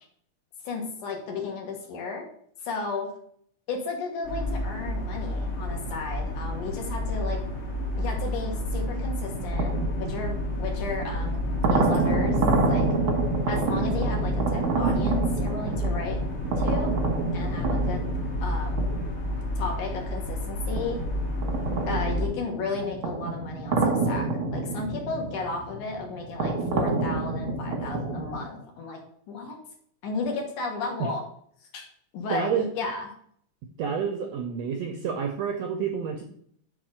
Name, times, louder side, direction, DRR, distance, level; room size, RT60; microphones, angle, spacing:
voice 1, 0.6-2.3 2.6-3.1 3.7-7.4 8.0-9.7 10.0-12.4 12.7-12.9 13.5-16.2 16.6-16.9 17.3-18.0 18.4-18.9 19.6-21.0 21.9-29.0 29.3-29.6 30.0-31.2 31.7-31.9 32.1-33.1, left 4 dB, 70° left, 2 dB, 2.8 m, -33 dB
sound 1, 4.2-22.3, left 1 dB, 45° left, 2.3 m, -30 dB
sound 2, 8.6-20.2 20.8-28.4, right 3 dB, 60° right, 1.3 m, -28 dB
voice 2, 32.3-32.6 33.8-36.2, right 7 dB, 75° right, 3 dB, 1.5 m, -29 dB
5.9 x 4.3 x 6.3 m, 0.64 s
omnidirectional pair, 3.8 m